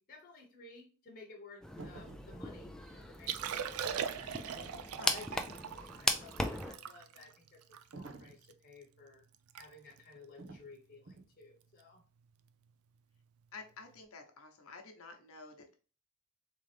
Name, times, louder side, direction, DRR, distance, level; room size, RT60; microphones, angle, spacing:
voice 1, 0.0-4.5 5.0-9.2 9.5-12.0, left 3 dB, 40° left, 0 dB, 1.0 m, -55 dB
sound 1, 1.6-6.7, left 1 dB, 5° left, 0.3 m, -38 dB
sound 2, 1.8-2.4 7.9-8.4 10.4-10.7 11.1-11.3, right 3 dB, 60° right, 0.7 m, -49 dB
Liquid, 3.1-8.5 9.0-9.1 9.3-9.7 9.9-10.2 10.8-11.0 12.5-12.6, right 8 dB, 90° right, 0.4 m, -41 dB
voice 2, 13.5-15.7, left 4 dB, 80° left, 4 dB, 0.9 m, -50 dB
3.7 x 3.0 x 3.3 m, 0.36 s
head